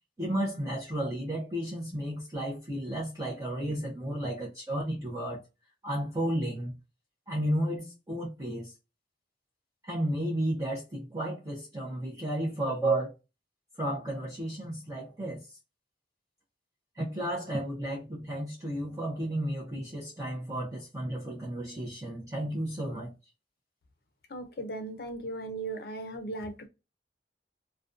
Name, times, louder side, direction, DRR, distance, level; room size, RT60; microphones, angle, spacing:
voice 1, 0.2-5.4 5.8-6.7 7.3-8.7 9.8-13.1 13.8-15.5 17.0-23.1, right 1 dB, 20° right, 0.6 m, -33 dB
voice 2, 24.3-26.7, right 2 dB, 60° left, 0.5 m, -37 dB
2.5 x 2.1 x 2.4 m
head